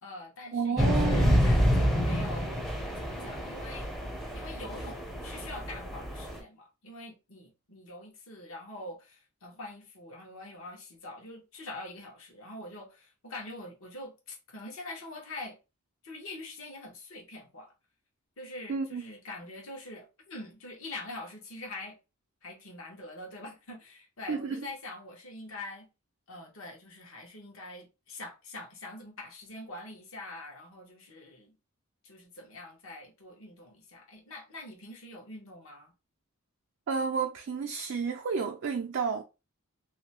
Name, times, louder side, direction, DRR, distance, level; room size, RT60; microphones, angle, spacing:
voice 1, 0.0-3.9 4.3-15.6 16.0-17.7 18.4-22.0 22.4-25.9 26.3-31.6 32.0-35.9, left 2 dB, 65° left, 1.1 m, -44 dB
voice 2, 0.5-1.4 18.7-19.0 24.3-24.7 36.9-39.2, right 5 dB, 60° right, 0.3 m, -31 dB
sound 1, 0.8-6.4, equal, ahead, 0.5 m, -28 dB
2.7 x 2.2 x 2.8 m
head